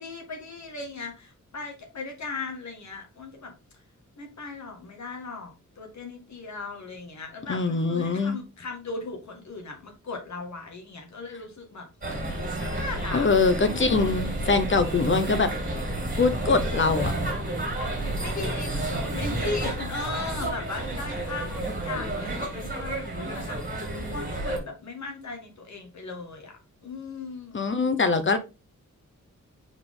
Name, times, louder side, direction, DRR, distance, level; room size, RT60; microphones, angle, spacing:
voice 1, 0.0-3.5 4.2-11.9 12.6-13.3 13.7-13.9 18.2-27.6, left 3 dB, 65° left, 3 dB, 1.9 m, -37 dB
voice 2, 7.5-8.4 13.1-15.5 16.2-17.1 27.5-28.4, left 4 dB, 40° left, 10 dB, 0.9 m, -23 dB
sound 1, 12.0-24.6, right 1 dB, 25° right, 2.3 m, -31 dB
5.8 x 4.9 x 3.8 m, 0.28 s
wide cardioid pair, 175°, 31 cm